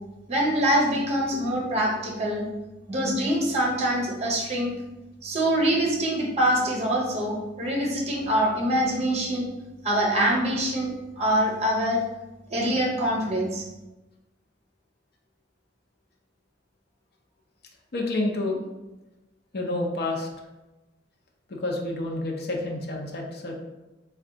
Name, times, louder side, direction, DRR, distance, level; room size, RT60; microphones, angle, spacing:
voice 1, 0.3-2.4 2.9-4.7 5.2-9.5 9.8-12.0 12.5-13.7, right 1 dB, 35° right, -1 dB, 0.8 m, -24 dB
voice 2, 17.9-18.6 19.5-20.3 21.5-23.5, left 2 dB, 60° left, 1 dB, 0.6 m, -29 dB
3.4 x 2.2 x 3.8 m, 1.1 s
head